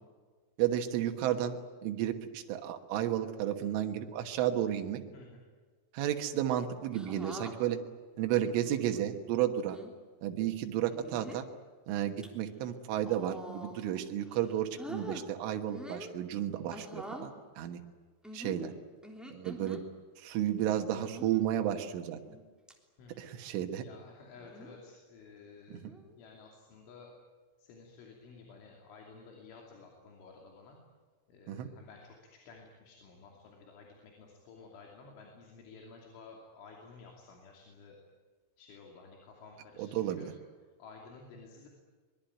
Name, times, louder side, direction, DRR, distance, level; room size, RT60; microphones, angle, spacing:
voice 1, 0.6-5.0 5.9-7.8 8.2-9.8 10.2-11.5 11.9-17.3 17.6-17.8 18.3-18.7 19.3-19.8 20.2-22.2 23.2-23.8 25.7-25.9 31.5-31.7 39.8-40.3, right 11 dB, 85° right, 5 dB, 3.9 m, -32 dB
sound 1, 6.9-7.5 8.5-9.0 9.6-9.9 10.9-11.5 12.0-12.3 13.0-13.9 14.3-15.2 15.6-16.1 16.7-17.3 18.2-19.8 21.0-21.5 22.1-22.4 22.7-22.8 24.4-24.8 25.8-26.1, equal, ahead, 2.3 m, -46 dB
voice 2, 23.0-25.9 26.2-27.1 27.6-30.8 31.3-38.0 38.6-40.3 40.8-41.7, left 4 dB, 75° left, 0 dB, 5.3 m, -53 dB
24.0 x 22.5 x 9.3 m, 1.5 s
omnidirectional pair, 5.5 m